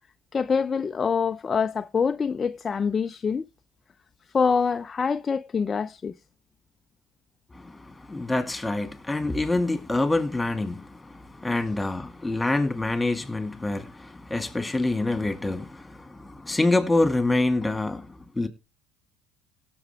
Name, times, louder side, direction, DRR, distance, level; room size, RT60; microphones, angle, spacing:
voice 1, 0.3-3.5 4.3-6.1, left 5 dB, 30° left, 0.5 m, -25 dB
voice 2, 7.5-18.5, left 2 dB, 10° left, 2.2 m, -26 dB
17.0 x 6.8 x 3.4 m
supercardioid pair, 90°, 0 cm